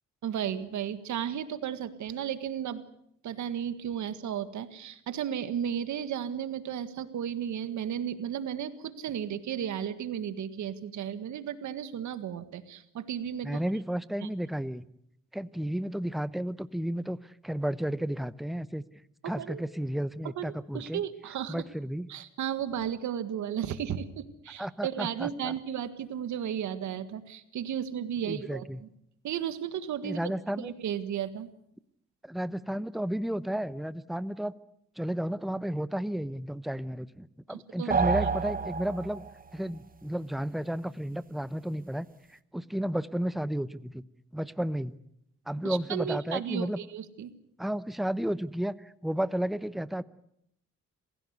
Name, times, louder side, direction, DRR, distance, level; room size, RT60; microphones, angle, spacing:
voice 1, 0.2-2.8 3.2-13.6 14.2-14.3 19.2-19.6 20.4-20.5 20.7-21.5 22.1-28.9 29.2-31.5 37.5-38.0 45.6-47.3, right 9 dB, 70° right, 12 dB, 1.8 m, -34 dB
voice 2, 13.4-14.9 15.3-17.2 17.4-18.8 19.2-21.0 21.5-22.1 24.6-25.5 28.2-28.8 30.0-30.7 32.2-34.5 35.0-39.2 39.5-44.0 44.3-45.0 45.5-46.8 47.6-50.0, right 1 dB, ahead, 15 dB, 0.8 m, -32 dB
sound 1, 37.9-39.4, right 5 dB, 30° right, 1.1 m, -28 dB
27.0 x 16.0 x 8.2 m, 0.74 s
cardioid pair, 90°, 30 cm